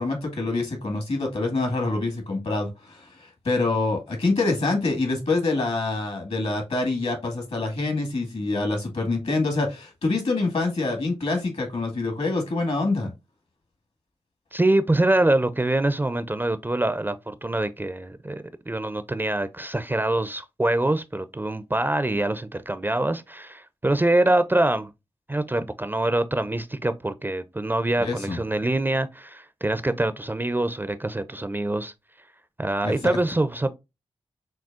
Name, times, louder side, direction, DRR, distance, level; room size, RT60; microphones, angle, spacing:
voice 1, 0.0-13.1 28.0-28.4 32.8-33.2, left 3 dB, 65° left, 1.8 m, -26 dB
voice 2, 14.5-24.9 25.3-31.9 32.6-33.7, right 1 dB, 15° right, 0.4 m, -24 dB
6.0 x 2.3 x 2.4 m
cardioid pair, 40°, 11 cm